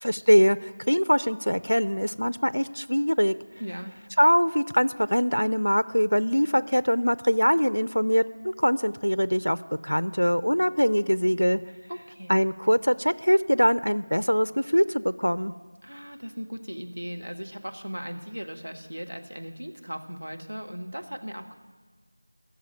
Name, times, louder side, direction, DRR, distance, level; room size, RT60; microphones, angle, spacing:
voice 1, 0.0-3.3 4.2-9.6 9.8-11.6 12.3-15.5, equal, 80° left, 15 dB, 0.4 m, -23 dB
voice 2, 3.6-3.9 11.9-12.3 15.8-21.6, equal, 70° right, 4 dB, 1.4 m, -37 dB
15.0 x 6.8 x 8.9 m, 1.4 s
figure-of-eight pair, 175°, 0 cm